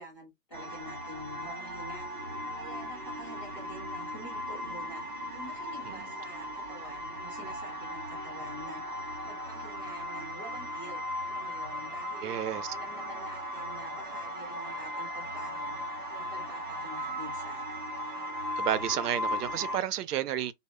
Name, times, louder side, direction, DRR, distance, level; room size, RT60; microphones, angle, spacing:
voice 1, 0.0-2.1 2.5-11.0 11.3-12.4 12.7-15.8 16.1-17.6, equal, 20° left, 0.8 m, -48 dB
sound 1, 0.5-19.8, equal, 35° right, 0.5 m, -37 dB
voice 2, 12.2-12.7 18.6-20.5, right 11 dB, 80° right, 0.5 m, -31 dB
2.0 x 2.0 x 3.5 m
hypercardioid pair, 175°, 45 cm